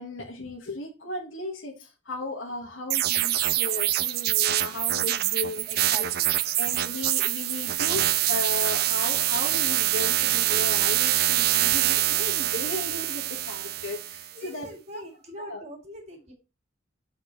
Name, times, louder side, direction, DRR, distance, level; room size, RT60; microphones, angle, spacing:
voice 1, 0.0-6.1 6.6-15.0 15.4-15.7, left 2 dB, 80° left, 1.5 m, -36 dB
sound 1, 2.9-14.3, right 14 dB, 50° right, 0.4 m, -25 dB
voice 2, 5.7-6.3 14.3-16.3, right 2 dB, 35° right, 2.0 m, -42 dB
6.8 x 4.1 x 4.3 m
head